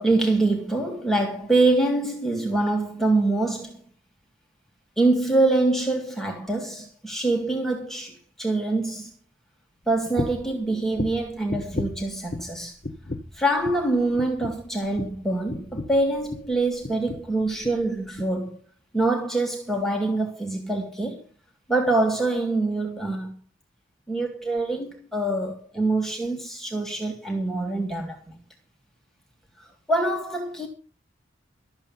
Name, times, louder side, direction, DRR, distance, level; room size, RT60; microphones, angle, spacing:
voice 1, 0.0-3.8 5.0-9.1 9.9-12.7 13.4-18.6 18.9-21.2 21.7-23.3 24.1-28.2 29.9-30.7, right 2 dB, ahead, 2.1 m, -25 dB
sound 1, 10.2-10.5 10.9-12.6 12.8-13.4 13.6-13.9 14.2-16.5 16.8-17.3 17.6-17.8 18.2-18.3, left 2 dB, 40° left, 1.2 m, -34 dB
13.0 x 8.3 x 7.2 m
head